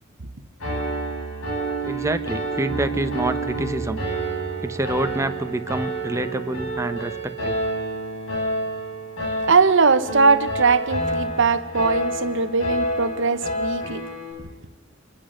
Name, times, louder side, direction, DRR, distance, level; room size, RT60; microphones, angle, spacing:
Piano, 0.6-14.3, right 1 dB, 75° left, 6.4 m, -28 dB
voice 1, 1.6-4.0 4.6-7.6, right 1 dB, 15° right, 1.0 m, -27 dB
voice 2, 9.5-14.0, right 4 dB, 65° right, 1.1 m, -20 dB
26.5 x 21.0 x 6.6 m
head